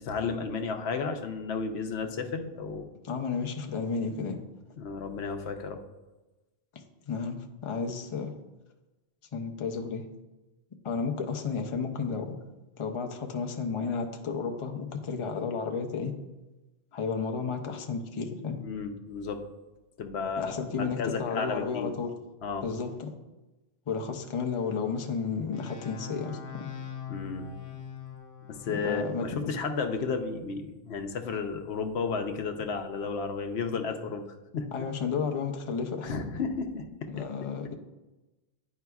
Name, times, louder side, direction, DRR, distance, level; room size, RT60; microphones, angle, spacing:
voice 1, 0.0-2.9 4.8-5.8 18.6-19.4 20.0-21.9 22.4-22.6 27.1-27.5 28.5-34.2 34.5-34.7 36.0-37.3, left 5 dB, 85° left, 6 dB, 1.0 m, -33 dB
voice 2, 3.0-4.4 6.7-8.3 9.3-10.0 10.8-12.3 12.8-16.1 16.9-18.6 20.4-22.1 22.6-23.1 23.9-26.7 28.7-29.5 34.7-36.1 37.1-37.7, left 5 dB, 35° left, 3 dB, 0.6 m, -32 dB
sound 1, 25.5-29.1, left 7 dB, 65° left, 0.9 m, -42 dB
10.5 x 4.7 x 2.3 m, 1.1 s
omnidirectional pair, 1.1 m